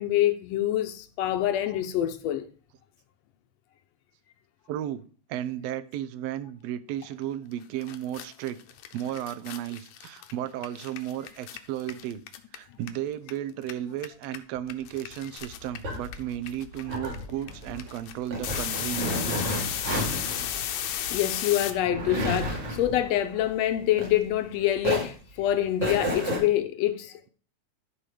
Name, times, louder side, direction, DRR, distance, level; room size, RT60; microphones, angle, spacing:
voice 1, 0.0-2.5 20.9-27.3, left 12 dB, 75° left, 1.7 m, -26 dB
voice 2, 4.7-5.0 5.3-8.6 8.9-12.2 12.5-19.7, right 11 dB, 75° right, 1.6 m, -34 dB
sound 1, 7.5-7.6 7.8-13.3 13.6-21.7, left 11 dB, 90° left, 2.2 m, -34 dB
sound 2, 15.4-24.5 24.8-26.4, equal, 55° right, 3.1 m, -32 dB
12.5 x 4.3 x 4.9 m
omnidirectional pair, 3.4 m